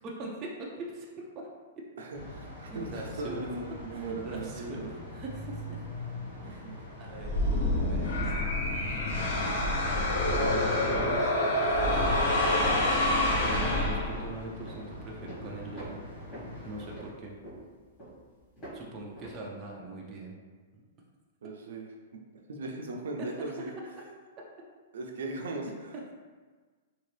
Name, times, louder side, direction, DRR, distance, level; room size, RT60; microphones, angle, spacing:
voice 1, 0.0-1.5 2.7-3.5 3.9-5.4 6.4-6.7 7.0-7.3 7.9-8.3 8.9-12.1 13.0-16.0 16.6-17.3 18.7-20.3, right 2 dB, 20° right, -2 dB, 0.4 m, -42 dB
voice 2, 2.0-4.9 6.4-6.8 17.0-17.1 21.4-21.9 22.3-23.7 24.9-26.1, right 2 dB, 80° right, 1 dB, 0.5 m, -38 dB
sound 1, 2.1-17.0, left 1 dB, 85° left, 1.5 m, -44 dB
sound 2, 7.2-14.4, left 1 dB, 55° left, 0.7 m, -27 dB
sound 3, 11.3-11.5 11.8-12.6 13.0-13.1 13.5-13.7 14.1-14.3 14.6-14.9 15.2-15.5 15.8-18.8 19.2-19.4, right 1 dB, 20° left, 1.3 m, -45 dB
2.9 x 2.7 x 3.2 m, 1.4 s
hypercardioid pair, 180°, 0 cm